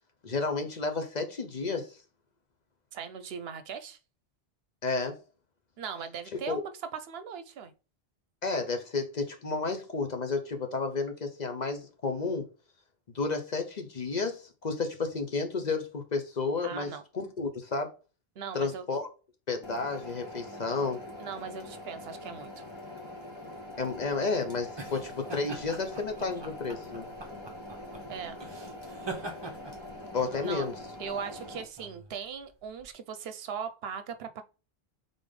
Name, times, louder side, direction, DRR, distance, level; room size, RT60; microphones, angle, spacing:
voice 1, 0.2-1.9 4.8-5.2 6.3-6.6 8.4-12.5 13.1-17.9 18.5-19.1 19.5-21.0 23.8-27.1 30.1-30.7, left 4 dB, 45° left, 0.8 m, -31 dB
voice 2, 2.9-4.0 5.8-7.7 16.6-17.0 18.4-18.8 21.2-22.7 28.1-28.4 30.4-30.7 31.0-34.4, right 7 dB, 75° right, 0.8 m, -39 dB
sound 1, 19.6-31.6, left 1 dB, 25° left, 1.4 m, -44 dB
sound 2, 23.7-32.9, right 2 dB, 30° right, 0.7 m, -44 dB
3.8 x 3.5 x 3.6 m
omnidirectional pair, 1.0 m